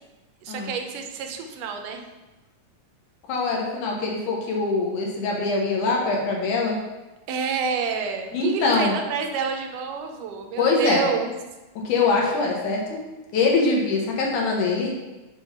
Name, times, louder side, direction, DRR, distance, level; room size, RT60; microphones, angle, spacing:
voice 1, 0.4-2.0 7.3-11.3, right 5 dB, 85° right, 4 dB, 2.2 m, -28 dB
voice 2, 3.3-6.8 8.3-8.9 10.6-11.1 11.8-13.0 13.3-14.9, left 3 dB, 75° left, -1 dB, 2.5 m, -23 dB
6.0 x 3.7 x 5.8 m, 1.1 s
omnidirectional pair, 3.7 m